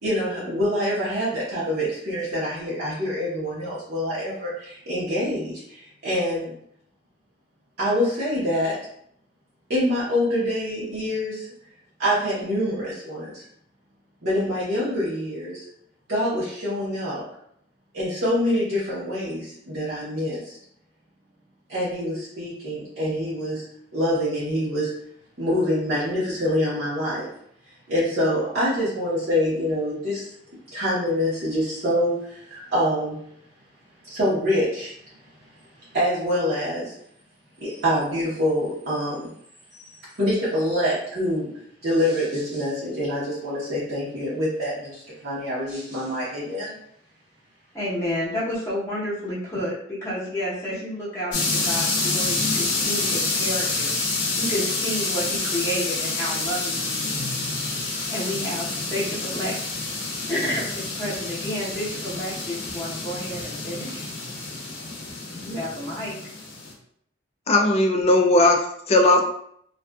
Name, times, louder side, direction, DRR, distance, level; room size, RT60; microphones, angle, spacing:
voice 1, 0.0-6.5 7.8-8.7 9.7-11.5 12.0-13.5 14.2-15.6 16.1-17.2 17.9-20.6 21.7-23.6 23.9-24.9 25.4-27.3 27.9-30.3 30.7-33.2 34.0-34.9 35.9-36.9 37.6-39.3 39.7-39.9 40.2-41.5 41.8-46.7, equal, 60° right, -10 dB, 0.9 m, -25 dB
voice 2, 47.7-57.2 58.1-59.5 60.3-64.1 65.4-66.2, equal, 15° left, -9 dB, 0.9 m, -30 dB
sound 1, 51.3-66.7, left 3 dB, 85° left, 0.7 m, -28 dB
voice 3, 67.5-69.3, left 2 dB, 35° left, 2 dB, 0.3 m, -18 dB
2.5 x 2.3 x 2.3 m, 0.68 s
head